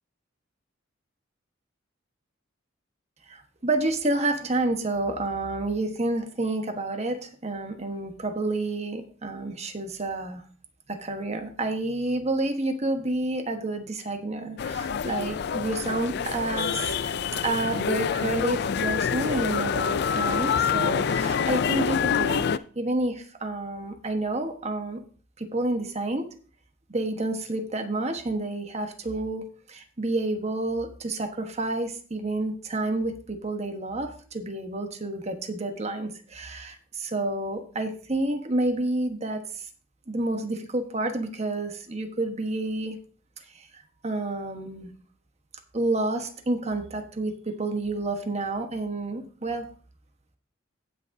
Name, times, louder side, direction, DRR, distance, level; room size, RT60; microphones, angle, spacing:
voice 1, 3.3-10.4 10.9-22.5 22.7-25.0 25.4-26.3 26.9-29.4 29.7-39.7 40.1-43.0 43.5-44.9 45.7-49.7, right 2 dB, 35° right, 6 dB, 1.2 m, -29 dB
sound 1, 14.6-22.6, left 6 dB, 55° left, 0.4 m, -26 dB
16.5 x 6.2 x 2.7 m, 0.43 s
head